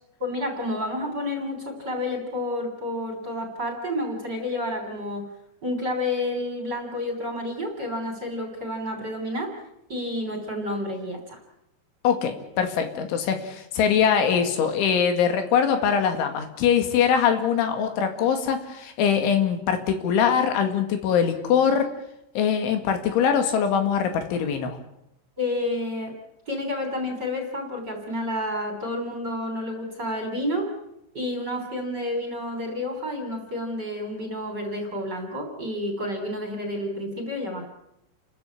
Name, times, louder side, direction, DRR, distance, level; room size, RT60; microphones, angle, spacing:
voice 1, 0.2-5.3 5.6-9.6 9.9-11.4 25.4-26.1 26.5-30.7 31.1-37.6, left 1 dB, 25° right, 4 dB, 3.1 m, -30 dB
voice 2, 12.0-21.9 22.4-24.8, left 7 dB, 85° left, 6 dB, 4.6 m, -22 dB
29.5 x 14.0 x 8.6 m, 0.81 s
omnidirectional pair, 5.4 m